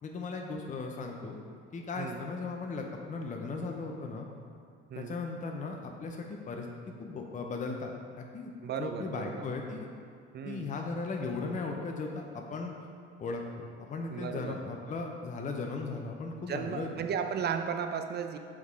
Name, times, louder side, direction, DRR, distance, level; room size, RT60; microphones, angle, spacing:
voice 1, 0.0-1.4 1.7-4.3 5.0-6.7 7.0-8.5 8.8-9.9 10.4-12.7 13.2-16.9, left 3 dB, 25° left, 1 dB, 0.7 m, -37 dB
voice 2, 8.6-9.4 10.3-10.7 14.1-14.6 16.5-18.4, right 7 dB, 35° right, 7 dB, 0.5 m, -35 dB
6.3 x 3.7 x 4.6 m, 2.3 s
hypercardioid pair, 75°, 31 cm